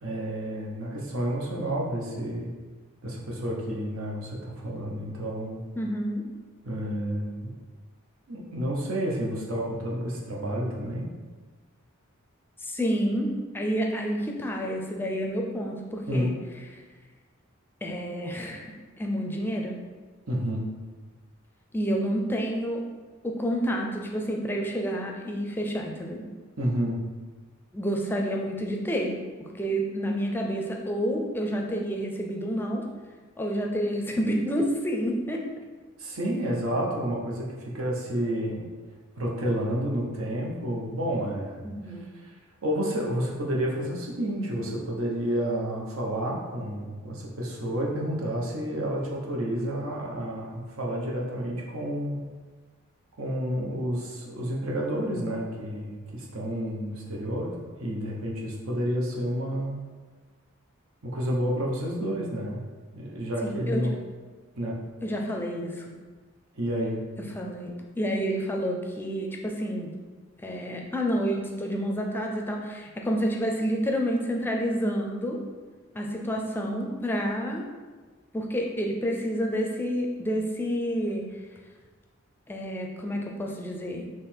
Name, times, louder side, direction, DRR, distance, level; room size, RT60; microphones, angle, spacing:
voice 1, 0.0-2.5 3.0-5.6 6.6-7.5 8.3-11.1 16.1-16.3 20.3-20.7 26.6-27.0 36.0-38.7 39.1-42.3 42.6-52.3 53.2-59.8 61.0-62.6 62.9-63.9 64.6-64.8 66.5-67.0, equal, 80° right, -3 dB, 0.9 m, -30 dB
voice 2, 5.8-6.2 12.6-16.3 17.8-18.7 19.0-19.8 21.7-22.8 23.2-26.2 27.7-29.2 29.6-32.8 33.4-35.5 41.6-42.1 63.4-63.9 65.0-65.9 67.2-69.9 70.4-75.4 75.9-77.6 78.3-81.3 82.5-84.1, equal, 10° left, 1 dB, 0.4 m, -29 dB
4.0 x 3.1 x 4.3 m, 1.4 s
head